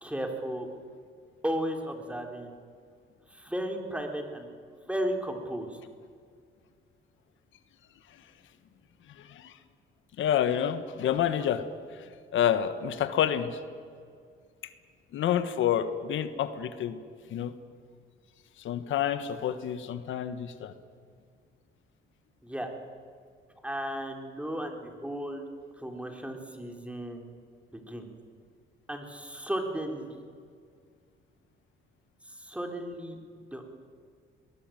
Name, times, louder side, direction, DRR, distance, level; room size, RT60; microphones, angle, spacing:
voice 1, 0.0-0.7 1.4-2.6 3.3-4.5 4.9-5.8 22.4-22.7 23.6-25.4 25.8-27.3 27.7-28.1 28.9-30.2 32.3-33.2 33.5-33.7, right 1 dB, 5° right, 3 dB, 3.7 m, -34 dB
voice 2, 9.2-9.5 10.2-11.6 12.3-13.6 15.1-17.0 17.3-17.5 18.6-20.7, left 10 dB, 75° left, 11 dB, 1.4 m, -28 dB
22.5 x 19.5 x 9.2 m, 2.1 s
cardioid pair, 90°, 20 cm